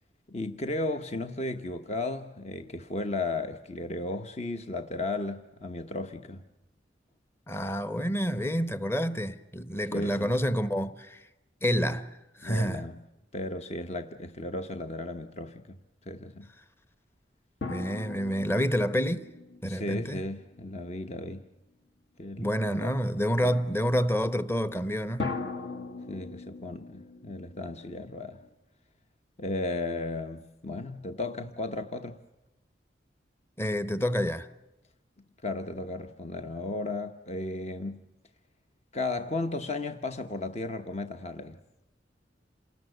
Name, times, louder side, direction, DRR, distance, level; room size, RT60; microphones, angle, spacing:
voice 1, 0.3-6.4 9.9-10.3 12.4-13.0 13.3-15.8 16.1-16.5 19.6-21.5 22.2-22.9 23.4-23.5 26.1-28.4 29.4-32.2 35.4-38.0 38.9-41.6, left 2 dB, 35° left, 1.0 m, -35 dB
voice 2, 7.5-11.2 11.6-12.1 12.4-12.8 17.7-19.3 19.6-20.2 22.4-25.3 33.6-34.5, equal, 15° left, 1.0 m, -28 dB
sound 1, 17.6-21.0 25.2-28.5, left 3 dB, 65° left, 2.5 m, -40 dB
28.5 x 19.5 x 7.9 m
head